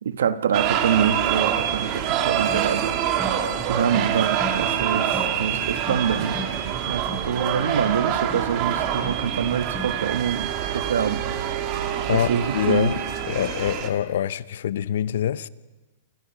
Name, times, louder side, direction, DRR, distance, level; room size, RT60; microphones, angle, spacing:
voice 1, 0.0-3.0 3.7-6.4 6.8-11.3 12.1-12.9, right 8 dB, 85° right, 1.4 m, -25 dB
sound 1, 0.5-13.9, right 9 dB, 35° right, 2.3 m, -26 dB
sound 2, 2.5-10.2, right 1 dB, ahead, 4.0 m, -37 dB
voice 2, 12.1-15.5, left 10 dB, 65° left, 0.8 m, -25 dB
29.5 x 27.0 x 5.8 m
hypercardioid pair, 160°, 0 cm